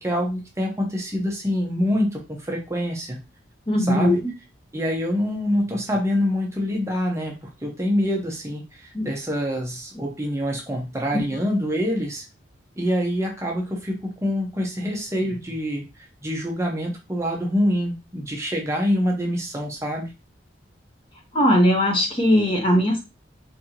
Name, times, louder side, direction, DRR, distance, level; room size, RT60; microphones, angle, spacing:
voice 1, 0.0-3.2 3.8-4.2 4.7-7.3 7.6-12.2 12.8-15.8 16.2-20.1, equal, 15° right, 0 dB, 0.8 m, -25 dB
voice 2, 3.7-4.3 8.9-9.1 21.3-23.0, equal, 30° left, 1 dB, 0.8 m, -19 dB
4.2 x 2.8 x 2.8 m, 0.26 s
head